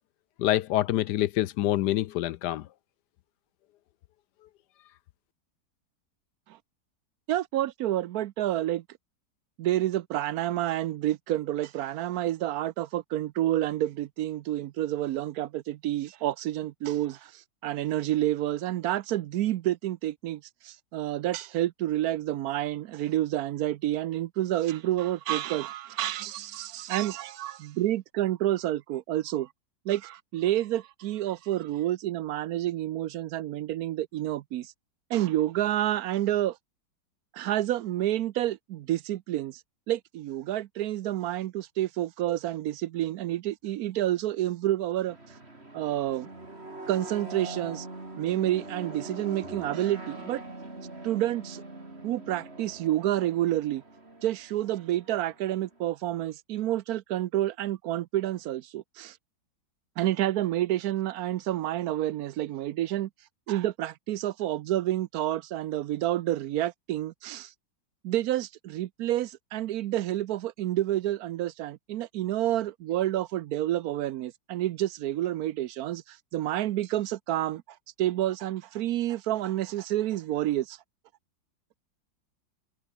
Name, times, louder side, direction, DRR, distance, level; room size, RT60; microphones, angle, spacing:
voice 1, 0.4-2.7, left 14 dB, 70° left, 1.1 m, -26 dB
voice 2, 7.3-8.8 9.6-29.5 29.9-34.7 35.1-36.6 37.3-39.6 39.9-45.2 45.7-46.3 46.9-47.9 48.2-50.4 51.0-51.6 52.0-53.8 54.2-59.2 60.0-63.1 63.5-67.5 68.0-77.6 78.0-80.8, right 13 dB, 70° right, 0.9 m, -29 dB
sound 1, 45.1-55.8, right 2 dB, 35° right, 4.5 m, -43 dB
omnidirectional pair, 2.0 m